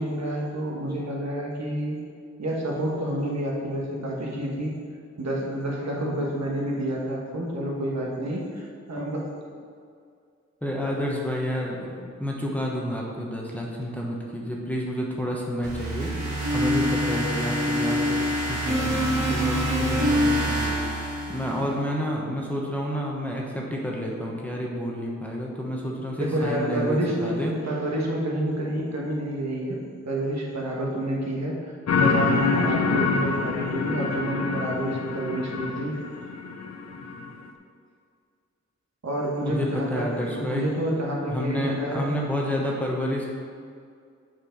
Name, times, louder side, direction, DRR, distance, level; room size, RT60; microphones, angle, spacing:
voice 1, 0.0-2.0 2.4-4.7 5.2-9.3 26.2-29.8 30.0-31.6 32.0-35.9 39.0-42.1, right 1 dB, 65° right, -3 dB, 1.5 m, -28 dB
voice 2, 10.6-16.1 16.5-27.5 39.4-40.7 41.3-43.3, equal, 5° left, -3 dB, 1.1 m, -30 dB
sound 1, 15.6-21.8, equal, 85° right, 2.0 m, -25 dB
sound 2, 31.9-37.4, left 4 dB, 65° left, 0.7 m, -26 dB
7.2 x 4.5 x 5.3 m, 2.2 s
wide cardioid pair, 110°, 29 cm